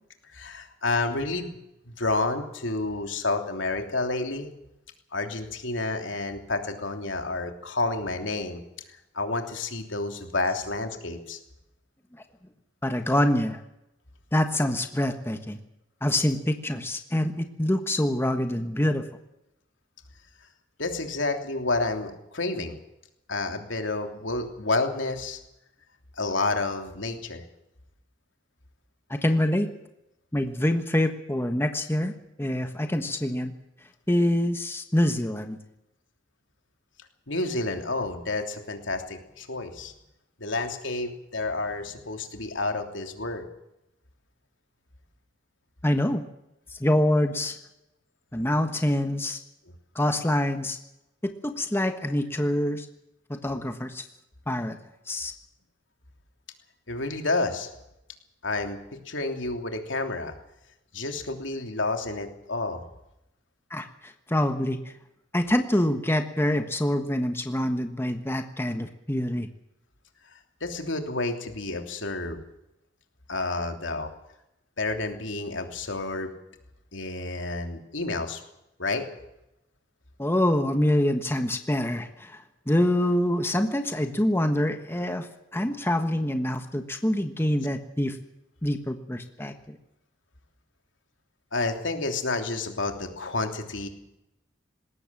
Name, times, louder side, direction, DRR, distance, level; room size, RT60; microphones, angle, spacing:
voice 1, 0.3-1.6 1.9-4.5 5.1-8.6 9.1-11.4 20.8-22.8 23.3-25.4 26.2-27.4 37.3-39.9 40.4-43.4 56.9-57.7 58.4-60.3 60.9-62.8 70.6-72.4 73.3-74.1 74.8-76.3 76.9-78.4 78.8-79.1 91.5-93.9, left 2 dB, 80° left, 4 dB, 3.1 m, -30 dB
voice 2, 12.8-13.6 14.3-15.6 16.0-19.0 29.1-29.7 30.3-33.5 34.1-35.6 45.8-46.2 46.8-47.6 48.3-49.4 49.9-50.8 51.2-52.9 53.3-54.0 54.5-54.8 55.1-55.3 63.7-64.8 65.3-69.5 80.2-85.3 85.5-88.2 88.6-89.8, left 1 dB, 15° left, 6 dB, 1.3 m, -25 dB
20.0 x 18.0 x 7.6 m, 0.87 s
head